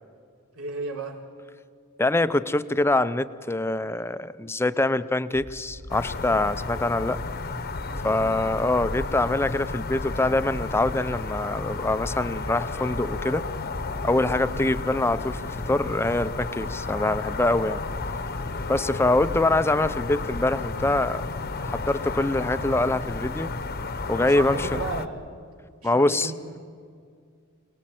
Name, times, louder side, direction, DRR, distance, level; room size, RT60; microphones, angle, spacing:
voice 1, 0.5-1.2 7.8-8.3 24.1-25.2 25.8-26.6, right 4 dB, 80° right, 1 dB, 3.4 m, -35 dB
voice 2, 2.0-7.2 8.0-13.4 14.0-17.8 18.7-21.2 21.6-23.5 24.1-24.7 25.8-26.3, left 2 dB, 10° left, 13 dB, 0.6 m, -24 dB
sound 1, 5.3-19.6, equal, 35° right, 2.0 m, -43 dB
sound 2, 5.9-25.1, left 3 dB, 50° left, 1.0 m, -32 dB
27.5 x 19.0 x 7.8 m, 2.2 s
head